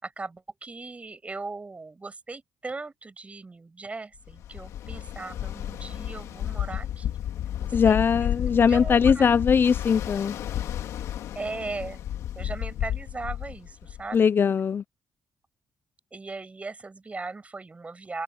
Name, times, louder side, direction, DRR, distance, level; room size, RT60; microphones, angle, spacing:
voice 1, 0.0-7.2 7.6-8.3 8.6-9.3 11.4-12.0 12.3-14.3 16.1-18.2, right 3 dB, 25° right, 7.0 m, -38 dB
Ocean, 4.3-14.2, left 11 dB, 80° left, 2.6 m, -32 dB
voice 2, 7.7-10.4 14.1-14.8, left 6 dB, 45° left, 0.6 m, -21 dB
cardioid pair, 85°, 5 cm